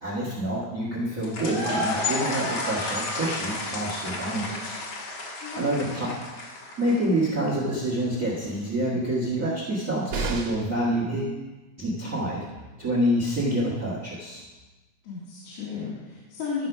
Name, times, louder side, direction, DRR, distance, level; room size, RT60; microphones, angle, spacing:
voice 1, 0.0-4.8 5.5-6.1 6.8-11.4 11.8-12.4 12.8-14.4, right 1 dB, 75° right, -5 dB, 0.7 m, -27 dB
sound 1, 1.2-7.2, left 2 dB, 55° left, 2.0 m, -31 dB
voice 2, 5.4-5.9 15.0-16.7, left 5 dB, 80° left, -8 dB, 3.9 m, -34 dB
sound 2, 10.1-10.8 12.8-12.9 13.2-13.3, right 4 dB, 55° right, 1.7 m, -31 dB
13.0 x 5.4 x 5.9 m, 1.2 s
omnidirectional pair, 4.5 m